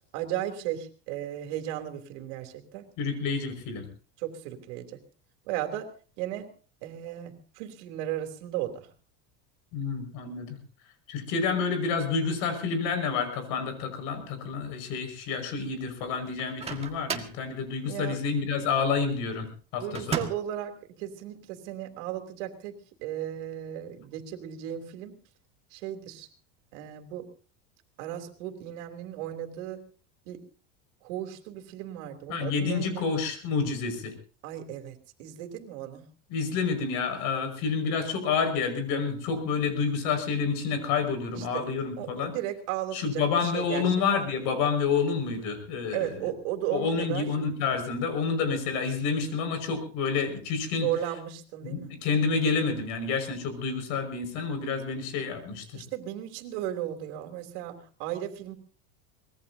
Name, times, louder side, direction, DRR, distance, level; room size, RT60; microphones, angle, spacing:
voice 1, 0.1-2.9 4.2-5.0 5.5-5.9 6.2-6.5 6.8-8.9 17.8-18.2 19.8-25.1 25.7-26.3 26.7-27.3 28.0-29.8 30.2-30.4 31.0-33.1 34.4-36.1 41.3-41.7 42.0-43.8 44.2-44.3 45.9-47.3 50.8-52.0 55.7-58.5, right 12 dB, 75° right, 5 dB, 3.2 m, -35 dB
voice 2, 3.0-3.9 9.7-10.6 11.1-20.2 32.3-34.1 36.3-42.3 42.9-46.3 46.7-50.9 51.6-55.8, left 5 dB, 60° left, 7 dB, 5.7 m, -29 dB
Microwave oven, 16.4-17.4 19.9-20.6, right 6 dB, 15° right, 1.8 m, -34 dB
24.0 x 20.0 x 2.8 m, 0.38 s
cardioid pair, 155°, 36 cm